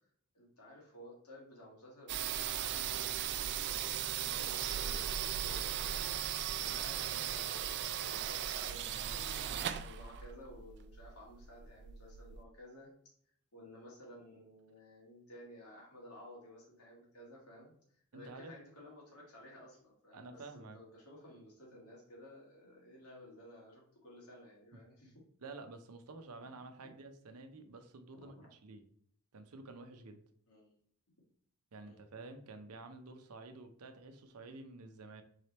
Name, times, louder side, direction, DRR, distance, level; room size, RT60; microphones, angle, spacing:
voice 1, 0.3-6.0 6.6-12.9 13.5-17.7 18.1-25.2 28.1-28.5 30.5-30.7 31.8-32.0, left 1 dB, 80° left, -4 dB, 2.0 m, -55 dB
sound 1, 2.1-12.4, right 10 dB, 50° right, 0.3 m, -37 dB
voice 2, 18.1-18.5 20.1-20.8 25.4-28.8 29.3-30.2 31.7-35.2, right 3 dB, 85° right, 7 dB, 0.6 m, -50 dB
3.8 x 3.3 x 4.2 m, 0.63 s
head